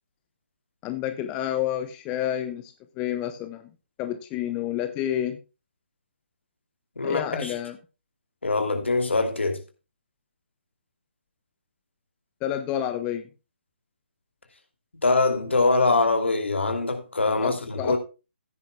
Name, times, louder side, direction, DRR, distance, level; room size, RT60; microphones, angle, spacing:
voice 1, 0.8-3.7 4.0-5.4 7.0-7.8 12.4-13.3 17.4-18.0, left 11 dB, 15° left, 0.7 m, -29 dB
voice 2, 7.0-7.5 8.4-9.6 15.0-18.0, left 3 dB, 70° left, 2.6 m, -23 dB
15.0 x 9.7 x 2.2 m
figure-of-eight pair, 145°, 6 cm